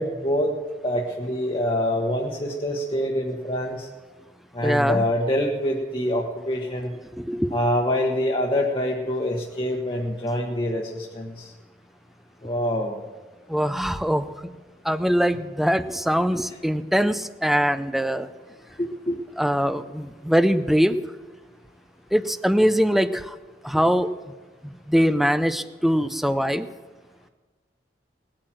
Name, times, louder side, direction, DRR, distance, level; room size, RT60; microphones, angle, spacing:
voice 1, 0.0-3.9 4.5-6.9 7.5-11.5 12.4-13.0 18.8-19.2, equal, 30° left, -1 dB, 1.2 m, -25 dB
voice 2, 4.6-5.0 7.1-7.6 13.5-14.3 14.8-18.3 19.4-21.0 22.1-23.4 23.6-24.1 24.6-26.7, equal, ahead, 12 dB, 0.5 m, -22 dB
19.0 x 8.9 x 7.5 m, 1.3 s
head